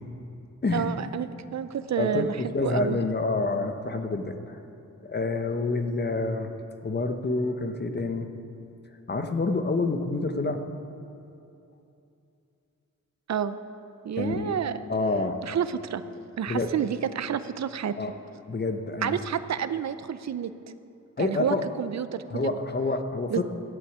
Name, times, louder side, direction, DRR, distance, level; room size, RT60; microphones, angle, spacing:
voice 1, 0.7-3.0 13.3-13.6 14.0-14.8 15.4-16.0 16.4-18.0 19.0-20.5 21.2-22.5 23.3-23.4, right 8 dB, 55° right, 13 dB, 0.6 m, -29 dB
voice 2, 2.0-4.6 5.0-6.5 6.8-8.3 9.1-10.6 14.2-14.6 14.9-15.4 16.5-16.7 17.9-18.1 18.5-19.2 21.2-21.6 22.3-23.4, left 3 dB, 30° left, 7 dB, 1.0 m, -28 dB
11.5 x 8.4 x 8.2 m, 2.7 s
wide cardioid pair, 95°, 32 cm